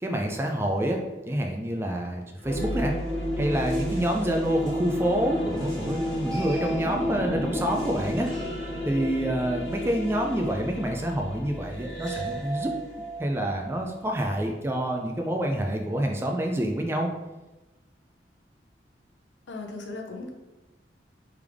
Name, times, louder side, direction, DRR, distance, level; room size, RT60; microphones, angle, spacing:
voice 1, 0.0-1.0 1.3-2.9 3.4-8.3 8.8-12.7 13.2-17.1, right 1 dB, 15° right, 2 dB, 0.3 m, -27 dB
sound 1, 2.4-14.2, equal, ahead, 1.4 m, -32 dB
voice 2, 19.5-20.3, left 3 dB, 80° left, 2 dB, 0.7 m, -37 dB
3.5 x 3.3 x 3.4 m, 1.1 s
head